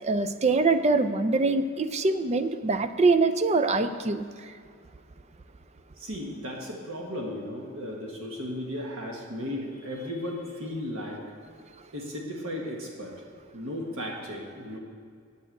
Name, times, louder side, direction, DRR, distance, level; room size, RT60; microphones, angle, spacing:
voice 1, 0.0-4.2, right 3 dB, 30° right, 9 dB, 0.5 m, -24 dB
voice 2, 6.0-11.2 11.9-13.1 13.5-14.8, left 1 dB, 70° right, -1 dB, 1.6 m, -35 dB
8.7 x 7.8 x 7.7 m, 2.1 s
head